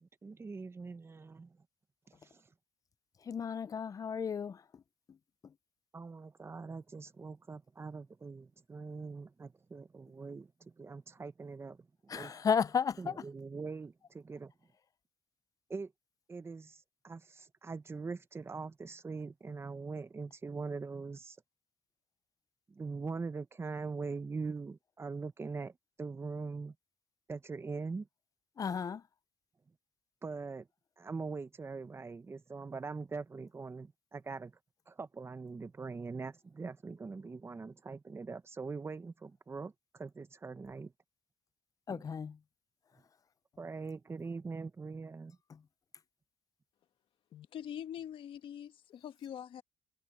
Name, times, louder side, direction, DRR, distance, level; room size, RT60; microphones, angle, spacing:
voice 1, 0.0-1.6 2.1-2.5 5.9-12.3 13.0-14.5 15.7-15.9 16.3-21.4 22.7-26.7 27.3-28.1 30.2-30.7 31.0-34.6 34.9-40.9 41.9-42.0 43.6-45.4, right 4 dB, 30° right, 1.2 m, -42 dB
voice 2, 3.2-4.8 5.1-5.2 5.4-5.5 12.1-13.2 28.6-29.0 41.9-42.4 45.5-45.6, left 6 dB, 40° left, 0.6 m, -34 dB
voice 3, 47.3-49.6, left 9 dB, 70° left, 1.5 m, -44 dB
cardioid pair, 95°, 9 cm